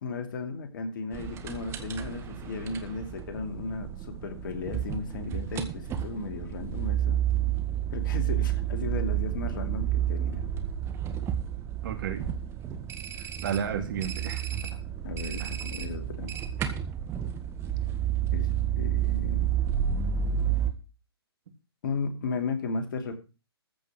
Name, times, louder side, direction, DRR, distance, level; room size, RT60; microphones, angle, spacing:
voice 1, 0.0-7.3 7.9-10.5 15.0-16.3 18.3-18.5 18.8-19.5 21.8-23.2, left 4 dB, 50° left, 7 dB, 2.7 m, -35 dB
sound 1, 1.1-20.7, right 10 dB, 20° right, 1.6 m, -30 dB
voice 2, 11.8-12.3 13.2-14.6 15.4-15.5, right 8 dB, 50° right, 7 dB, 2.9 m, -33 dB
14.5 x 5.5 x 7.6 m, 0.32 s
figure-of-eight pair, 130°, 14 cm